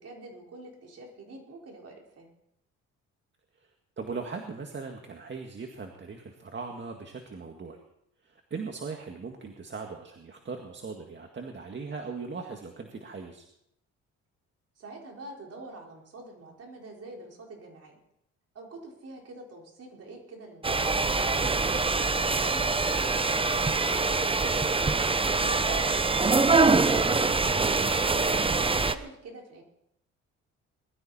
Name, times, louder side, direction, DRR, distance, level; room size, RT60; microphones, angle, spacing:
voice 1, 0.0-2.3 14.8-18.0 18.5-21.0 22.1-24.6 25.2-29.6, right 2 dB, 55° right, -1 dB, 4.8 m, -45 dB
voice 2, 4.0-7.8 8.2-13.5 22.0-22.2, right 4 dB, 40° right, 3 dB, 1.9 m, -39 dB
sound 1, 20.6-28.9, right 3 dB, 20° right, 0.8 m, -24 dB
21.0 x 13.0 x 4.3 m, 0.76 s
cardioid pair, 90°, 30 cm